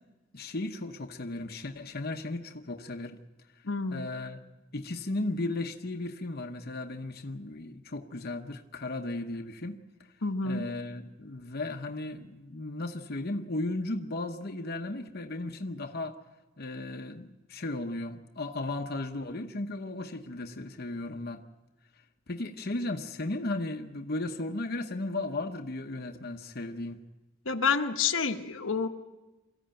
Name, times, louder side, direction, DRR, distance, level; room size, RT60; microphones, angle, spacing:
voice 1, 0.3-3.2 3.9-4.4 4.7-9.8 10.4-16.2 16.6-21.4 22.3-27.0, left 2 dB, 50° left, 1.0 m, -35 dB
voice 2, 3.6-4.1 10.2-10.6 27.4-28.9, left 5 dB, 85° left, 1.2 m, -29 dB
23.0 x 14.5 x 8.9 m
head